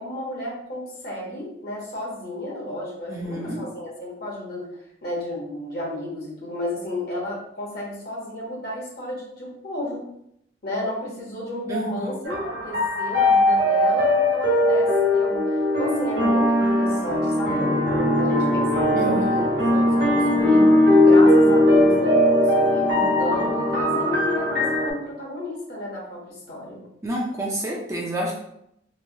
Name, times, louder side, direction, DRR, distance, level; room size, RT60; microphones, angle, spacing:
voice 1, 0.0-4.7 5.0-10.0 10.6-15.5 15.8-20.7 21.0-26.8, left 1 dB, 55° left, -4 dB, 0.8 m, -32 dB
voice 2, 3.1-3.6 11.7-12.5 18.9-19.5 27.0-28.3, right 1 dB, 15° right, -2 dB, 0.3 m, -29 dB
sound 1, 12.3-24.9, left 1 dB, 70° right, 1.0 m, -19 dB
3.0 x 2.1 x 2.6 m, 0.76 s
head